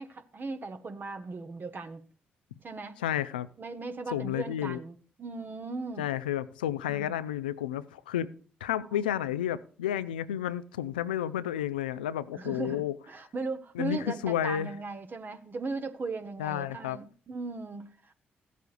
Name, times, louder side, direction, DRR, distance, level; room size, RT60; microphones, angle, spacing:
voice 1, 0.0-2.0 2.6-2.9 3.6-6.1 6.9-7.2 12.3-18.1, right 3 dB, 45° right, 1.0 m, -38 dB
voice 2, 3.0-3.5 4.1-4.8 6.0-8.3 8.6-12.9 13.8-14.7 16.4-17.0, left 11 dB, 90° left, 0.4 m, -31 dB
15.5 x 8.2 x 2.5 m
hypercardioid pair, 40°, 5 cm